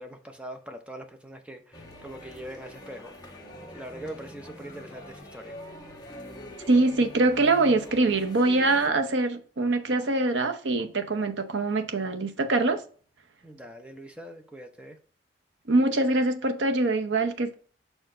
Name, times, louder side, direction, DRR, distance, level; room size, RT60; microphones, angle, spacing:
voice 1, 0.0-3.1 3.7-5.5 13.4-15.0, right 1 dB, 5° right, 0.7 m, -42 dB
sound 1, 1.7-8.9, left 1 dB, 20° left, 1.2 m, -44 dB
voice 2, 6.7-12.8 15.7-17.5, right 2 dB, 85° right, 0.8 m, -24 dB
5.7 x 4.4 x 3.8 m
head